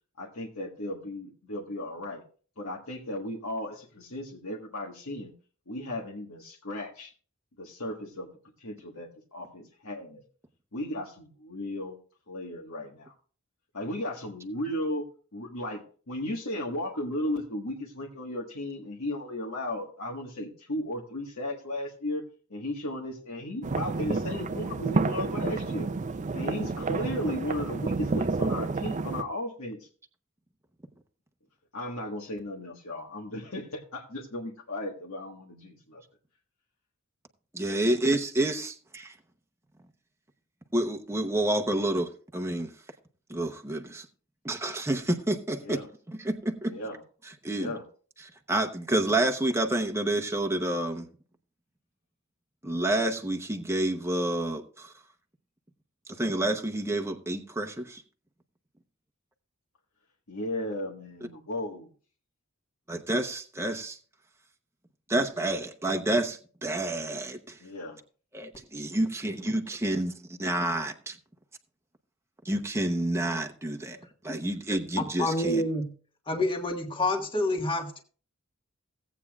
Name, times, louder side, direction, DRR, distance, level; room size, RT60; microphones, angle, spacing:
voice 1, 0.2-2.2 2.6-5.3 5.7-7.1 7.6-8.3 8.6-10.2 10.7-12.0 12.3-13.1 13.7-15.1 15.3-15.8 16.1-22.2 22.5-25.9 26.3-29.9 31.7-36.0 45.6-45.9 46.7-47.0 47.5-47.8 60.3-61.9 67.6-68.0, left 1 dB, 75° left, -2 dB, 1.5 m, -35 dB
sound 1, 23.6-29.2, right 3 dB, 35° right, 0.5 m, -30 dB
voice 2, 37.5-39.1 40.7-42.7 43.3-44.0 44.4-45.8 46.2-46.7 47.4-47.7 48.5-51.1 52.6-54.9 56.2-58.0 62.9-64.0 65.1-67.5 68.3-70.1 70.4-71.1 72.5-74.0 74.2-75.6, right 1 dB, 15° right, 4 dB, 0.8 m, -29 dB
voice 3, 75.0-75.9 76.3-78.0, left 1 dB, 25° left, 2 dB, 1.5 m, -28 dB
17.0 x 8.4 x 2.3 m, 0.40 s
head